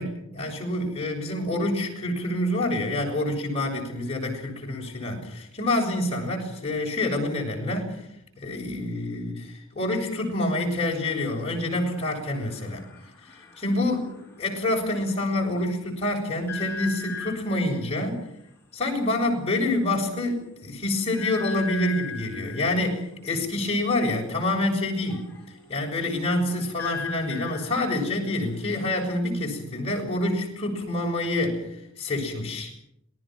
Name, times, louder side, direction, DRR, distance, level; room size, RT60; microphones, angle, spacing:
voice 1, 0.0-8.0 8.4-12.8 13.6-14.1 14.4-18.2 18.7-25.3 25.7-31.7 32.0-32.7, left 1 dB, 30° left, 0 dB, 6.7 m, -27 dB
sound 1, 10.8-15.2 16.5-17.7 18.9-19.0 19.3-19.5 19.9-20.0 21.1-22.8 24.9-29.0, left 5 dB, 10° left, 5.2 m, -40 dB
27.5 x 19.5 x 6.1 m, 0.76 s
head